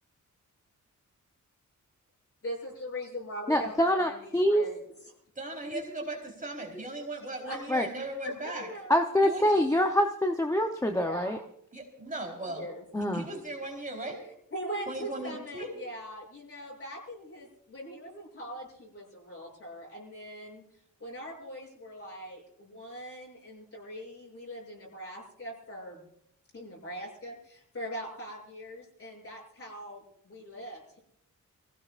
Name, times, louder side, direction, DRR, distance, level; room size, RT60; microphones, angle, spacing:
voice 1, 2.4-4.8 7.4-7.7 8.4-8.9 10.9-11.4 12.5-13.2 14.5-20.6 21.0-26.0 26.5-31.0, equal, 45° left, -3 dB, 7.8 m, -41 dB
voice 2, 3.5-4.7 5.7-5.8 7.7-7.9 8.9-11.4 12.9-13.3, equal, 10° left, 4 dB, 0.7 m, -25 dB
voice 3, 5.4-8.7 9.2-9.4 11.7-12.7 13.1-14.2 14.9-15.7, right 2 dB, 25° right, 1 dB, 3.9 m, -37 dB
26.0 x 16.5 x 2.5 m, 0.72 s
wide cardioid pair, 140°, 31 cm